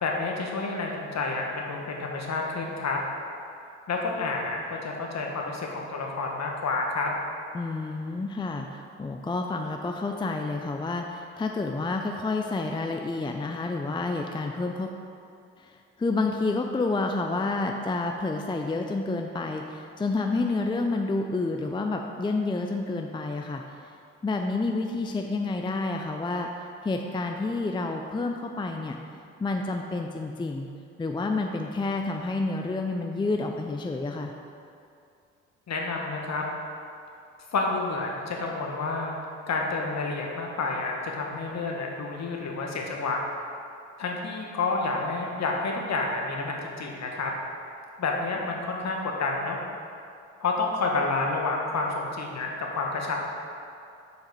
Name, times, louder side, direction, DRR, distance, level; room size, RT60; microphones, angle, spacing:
voice 1, 0.0-3.0 3.9-7.1 35.7-36.4 37.5-39.2 39.5-43.2 44.0-47.3 48.0-49.6 50.4-53.2, left 3 dB, 50° left, 0 dB, 1.3 m, -29 dB
voice 2, 7.5-14.9 15.6-23.6 24.2-26.5 26.8-29.0 29.4-30.7 31.0-34.3, left 3 dB, 15° left, 3 dB, 0.5 m, -29 dB
6.6 x 4.8 x 4.8 m, 2.5 s
hypercardioid pair, 50°, 35 cm